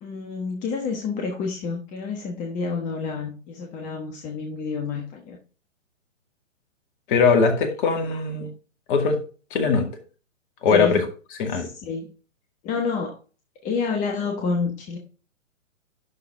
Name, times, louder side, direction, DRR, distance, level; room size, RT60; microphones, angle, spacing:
voice 1, 0.0-5.4 10.7-11.0 11.5-12.1 12.6-13.2 13.6-15.0, left 4 dB, 20° left, 2 dB, 1.2 m, -29 dB
voice 2, 7.1-8.5 8.9-9.2 9.5-9.9 10.6-11.0 11.4-11.7, left 5 dB, 40° left, 4 dB, 2.2 m, -20 dB
11.5 x 4.0 x 3.8 m, 0.36 s
figure-of-eight pair, 130°, 39 cm